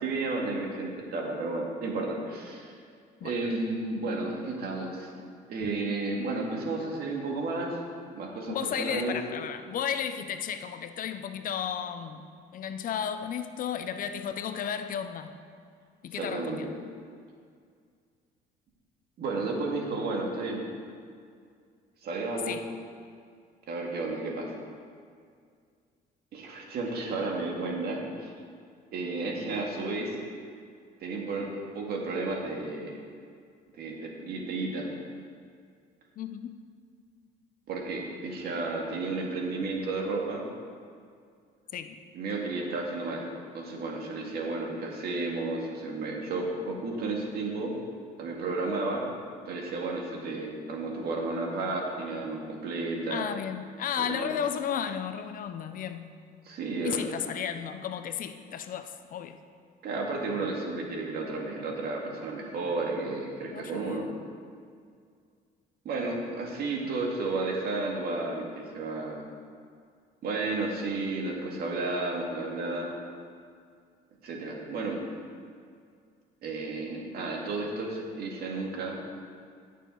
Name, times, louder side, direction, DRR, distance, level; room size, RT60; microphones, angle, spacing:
voice 1, 0.0-2.7 3.2-5.1 5.5-7.8 8.1-9.2 16.1-16.7 19.2-20.6 22.0-22.6 23.7-24.5 26.3-28.3 28.9-30.1 31.0-33.0 33.8-34.9 37.7-40.4 42.1-43.3 43.5-47.7 48.2-49.1 49.5-53.3 54.0-54.3 56.4-57.0 59.8-64.1 65.8-69.2 70.2-72.9 74.2-75.0 76.4-79.0, right 3 dB, 65° right, 0 dB, 2.1 m, -32 dB
voice 2, 8.5-12.2 12.5-15.3 16.0-16.7 22.5-22.7 36.2-36.5 41.7-41.9 53.1-56.1 56.8-59.4 63.5-64.2, left 8 dB, 55° left, 9 dB, 0.7 m, -33 dB
18.5 x 6.7 x 3.9 m, 2.2 s
cardioid pair, 110°, 17 cm